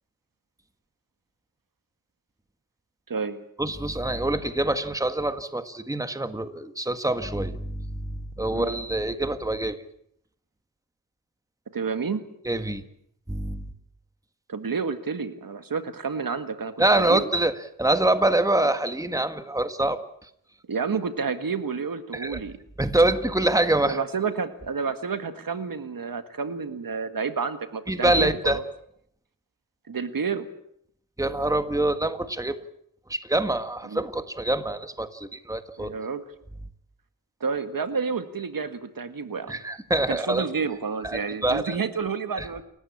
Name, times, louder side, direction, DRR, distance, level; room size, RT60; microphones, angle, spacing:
voice 1, 3.1-3.4 8.5-8.7 11.7-12.2 14.5-17.2 20.7-22.6 23.9-28.6 29.9-30.5 33.9-34.0 35.8-36.2 37.4-39.6 40.1-42.6, right 5 dB, 75° right, 9 dB, 1.9 m, -30 dB
voice 2, 3.6-9.8 12.5-12.8 13.3-13.7 16.8-17.5 17.8-20.3 22.1-22.4 22.8-24.0 27.9-28.6 31.2-32.6 33.1-35.9 39.5-40.4 41.0-41.8 42.4-42.6, right 1 dB, 10° right, 9 dB, 1.7 m, -25 dB
29.0 x 15.0 x 8.6 m, 0.71 s
wide cardioid pair, 100°, 34 cm